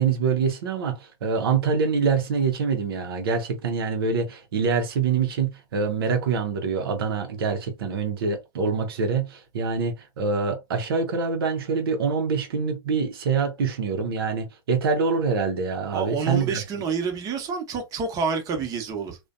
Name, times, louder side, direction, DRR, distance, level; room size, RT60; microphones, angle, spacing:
voice 1, 0.0-16.6, right 5 dB, 75° right, 0.6 m, -25 dB
voice 2, 15.9-19.2, right 5 dB, 30° right, 0.8 m, -28 dB
2.5 x 2.1 x 2.4 m
hypercardioid pair, 115°, 13 cm